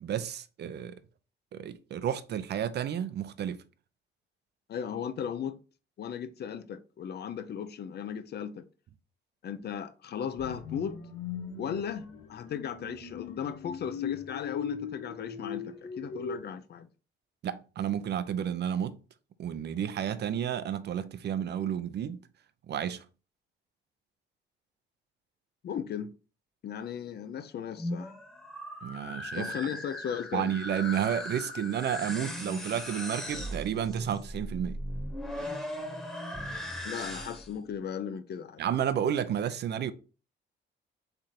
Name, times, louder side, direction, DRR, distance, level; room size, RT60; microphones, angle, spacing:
voice 1, 0.0-1.0 1.5-3.6 17.4-19.0 19.4-22.3 22.7-23.0 28.8-29.5 30.3-34.8 38.6-39.9, right 9 dB, 55° right, 0.6 m, -31 dB
voice 2, 4.7-5.6 6.0-8.6 9.4-11.0 11.6-16.9 25.6-26.1 26.6-28.1 29.4-30.5 36.8-38.6, left 8 dB, 55° left, 0.6 m, -36 dB
sound 1, 10.4-16.4, left 7 dB, 80° left, 1.3 m, -39 dB
sound 2, 27.6-37.6, left 1 dB, 5° left, 1.1 m, -38 dB
3.6 x 3.4 x 4.2 m
cardioid pair, 90°, 20 cm